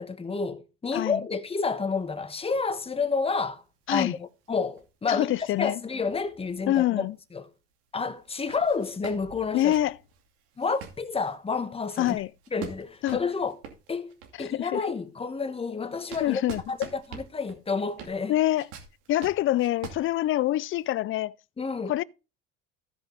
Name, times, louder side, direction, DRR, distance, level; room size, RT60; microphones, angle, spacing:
voice 1, 0.0-3.6 3.9-7.5 7.9-9.7 10.6-12.2 12.5-13.6 13.9-16.4 16.7-18.4 21.6-21.9, left 4 dB, 20° left, 1.2 m, -30 dB
sound 1, 1.7-7.1 7.4-7.5 8.2-14.6 15.1-20.8, right 7 dB, 85° right, 2.5 m, -46 dB
voice 2, 5.1-5.8 6.7-7.1 9.5-10.0 12.0-12.3 13.0-13.2 14.4-14.8 16.2-16.9 18.3-18.7 19.1-21.3 21.9-22.0, left 14 dB, 40° left, 0.4 m, -25 dB
15.0 x 5.3 x 3.9 m
supercardioid pair, 105°, 31 cm